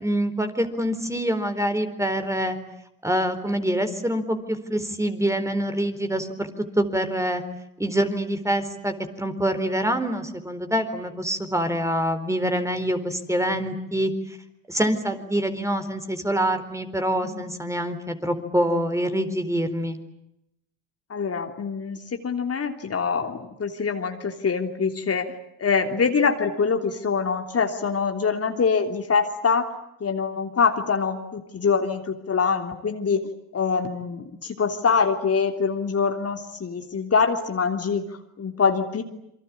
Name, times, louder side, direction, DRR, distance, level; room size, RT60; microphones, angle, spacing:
voice 1, 0.0-2.6 3.0-6.5 6.8-7.4 7.8-14.4 14.7-20.0, equal, 5° right, 8 dB, 4.2 m, -25 dB
voice 2, 21.1-25.3 25.6-29.7 30.0-33.2 33.5-38.0 38.4-39.0, left 5 dB, 35° left, 5 dB, 3.3 m, -24 dB
28.0 x 23.5 x 8.6 m, 0.83 s
hypercardioid pair, 70°, 39 cm